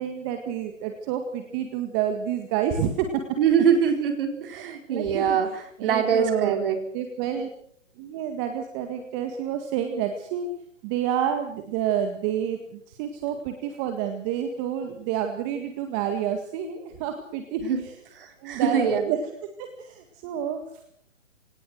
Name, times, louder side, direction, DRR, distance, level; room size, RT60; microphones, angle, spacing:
voice 1, 0.0-3.2 4.9-5.4 5.8-6.6 6.9-7.5 8.0-10.5 10.8-17.9 18.4-19.2 19.6-20.6, right 9 dB, 25° right, 5 dB, 1.8 m, -29 dB
voice 2, 3.4-5.5 5.8-6.8 17.6-17.8 18.2-19.1, right 7 dB, 45° right, 5 dB, 4.7 m, -23 dB
24.5 x 18.5 x 6.5 m, 0.66 s
hypercardioid pair, 145°, 39 cm